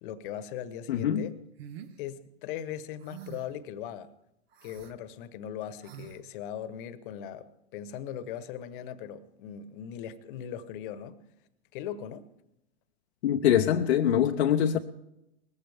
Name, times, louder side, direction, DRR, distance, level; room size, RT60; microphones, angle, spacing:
voice 1, 0.0-1.3 2.0-4.1 4.6-11.2 11.7-12.3, left 9 dB, 50° left, 1.2 m, -39 dB
voice 2, 0.9-1.3 13.2-14.8, left 10 dB, 70° left, 0.8 m, -24 dB
sound 1, 1.6-1.9 3.0-3.6 4.5-4.9 5.8-6.2, right 9 dB, 60° right, 1.3 m, -45 dB
20.0 x 15.0 x 3.5 m
hypercardioid pair, 120°, 34 cm